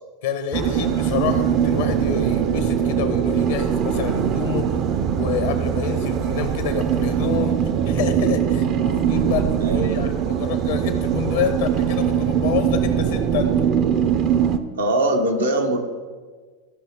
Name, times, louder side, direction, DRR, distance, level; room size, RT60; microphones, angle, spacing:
voice 1, 0.2-4.8 5.1-7.6 7.8-13.7, left 7 dB, 70° left, 7 dB, 1.1 m, -28 dB
sound 1, 0.5-14.6, right 8 dB, 45° right, 0.6 m, -21 dB
voice 2, 9.6-10.1 14.8-15.8, right 1 dB, 90° right, 2 dB, 1.1 m, -22 dB
14.0 x 5.5 x 3.6 m, 1.5 s
hypercardioid pair, 90°, 0 cm